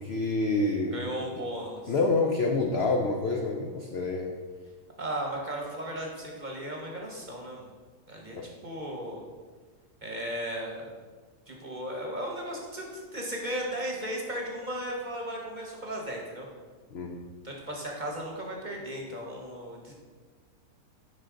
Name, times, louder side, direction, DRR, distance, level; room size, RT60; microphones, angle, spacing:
voice 1, 0.0-1.0 1.9-4.3 8.4-8.5 16.9-17.3, left 3 dB, 65° left, 3 dB, 0.6 m, -27 dB
voice 2, 0.9-1.9 5.0-7.7 8.1-8.4 8.6-9.2 10.0-11.0 11.5-16.5 17.4-19.9, right 1 dB, 35° right, -1 dB, 1.0 m, -36 dB
11.0 x 4.1 x 3.7 m, 1.4 s
omnidirectional pair, 1.7 m